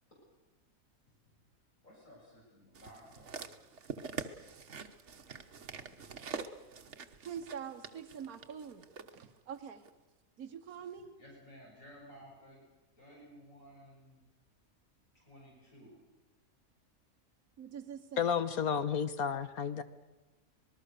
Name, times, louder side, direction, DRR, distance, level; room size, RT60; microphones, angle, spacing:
voice 1, 1.8-3.5 5.7-5.9 11.2-12.6 13.0-14.2 15.1-16.0, equal, 65° left, -5 dB, 7.5 m, -56 dB
sound 1, 2.8-9.1 9.9-10.0, right 5 dB, 55° right, 1.4 m, -45 dB
voice 2, 7.2-8.9 9.1-9.8 10.4-11.1 17.6-18.3, right 7 dB, 90° right, 6 dB, 1.6 m, -44 dB
voice 3, 18.2-19.8, left 7 dB, 90° left, 11 dB, 1.6 m, -32 dB
26.0 x 20.0 x 6.6 m, 1.1 s
omnidirectional pair, 1.5 m